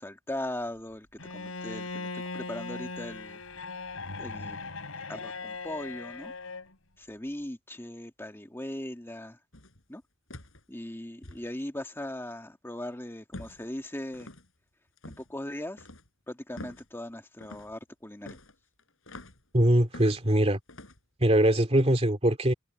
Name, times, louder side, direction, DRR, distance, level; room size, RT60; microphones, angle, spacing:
voice 1, 0.0-3.4 4.2-4.7 5.1-6.3 7.0-9.4 9.9-10.0 10.7-14.3 15.2-15.8 16.3-18.4, left 1 dB, 10° left, 1.7 m, -39 dB
Bowed string instrument, 1.2-6.7, left 3 dB, 90° left, 4.2 m, -39 dB
sound 1, 9.5-9.8 10.3-10.6 11.2-11.4 13.3-13.7 14.1-14.5 15.0-15.3 15.8-16.1 16.6-16.9 17.4-17.7 18.2-19.4 19.9-20.3 20.7-21.0, left 1 dB, 70° left, 5.9 m, -46 dB
voice 2, 19.5-20.6 21.2-22.5, right 1 dB, 30° right, 2.4 m, -22 dB
head